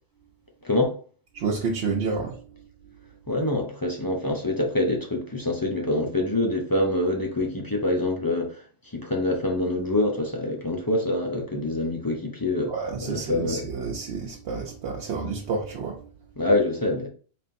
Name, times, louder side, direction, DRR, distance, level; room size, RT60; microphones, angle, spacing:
voice 1, 0.6-1.0 3.3-12.7 13.0-13.7 16.4-17.1, left 2 dB, 25° left, 0.5 m, -25 dB
voice 2, 1.3-2.4 12.7-16.1, right 4 dB, 90° right, 1.0 m, -29 dB
4.2 x 3.4 x 2.6 m
omnidirectional pair, 1.1 m